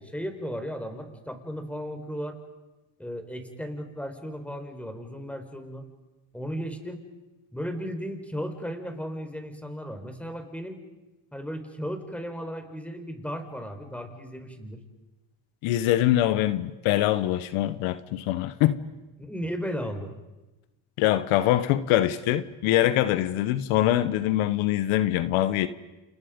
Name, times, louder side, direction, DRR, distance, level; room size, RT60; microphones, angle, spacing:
voice 1, 0.0-2.4 3.0-5.9 6.3-7.0 7.5-10.8 11.3-14.8 19.2-20.1, equal, 5° left, 6 dB, 4.5 m, -35 dB
voice 2, 15.6-18.8 21.0-25.7, left 13 dB, 85° left, 14 dB, 1.2 m, -23 dB
29.5 x 28.5 x 5.2 m, 1.1 s
supercardioid pair, 85°, 47 cm